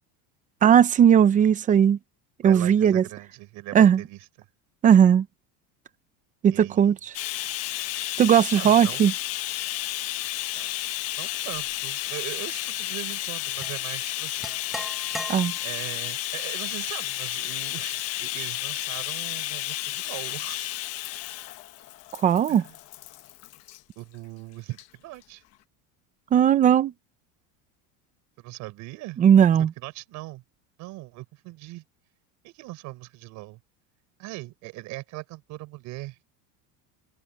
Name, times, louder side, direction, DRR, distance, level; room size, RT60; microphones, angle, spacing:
voice 1, 0.6-2.0 2.4-3.0 3.7-4.0 4.8-5.3 6.4-7.1 8.2-9.1 15.3-15.5 22.1-22.6 26.3-26.9 29.2-29.7, right 9 dB, 20° right, 0.7 m, -17 dB
voice 2, 2.4-4.2 6.5-7.0 8.5-9.0 10.5-10.7 11.1-14.6 15.6-20.8 22.5-22.7 24.0-25.4 28.4-29.2 29.5-30.4 30.8-31.8 32.4-33.6 34.2-36.2, right 20 dB, 50° right, 5.9 m, -40 dB
Bathtub (filling or washing), 7.1-23.8 24.7-24.9 25.2-25.3, left 16 dB, 40° left, 1.3 m, -32 dB
sound 1, 13.6-13.8 14.4-15.9, equal, ahead, 3.5 m, -38 dB
cardioid pair, 175°, 38 cm